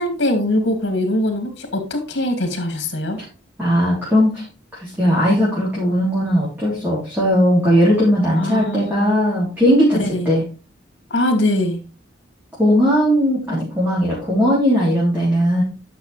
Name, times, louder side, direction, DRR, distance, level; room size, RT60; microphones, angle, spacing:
voice 1, 0.0-3.2 8.4-9.2 10.0-10.3 11.1-11.8, left 1 dB, 70° left, 5 dB, 2.4 m, -22 dB
voice 2, 3.6-4.4 4.8-10.0 10.3-10.5 12.6-15.6, equal, 10° right, -8 dB, 3.5 m, -17 dB
10.0 x 6.3 x 3.3 m, 0.33 s
head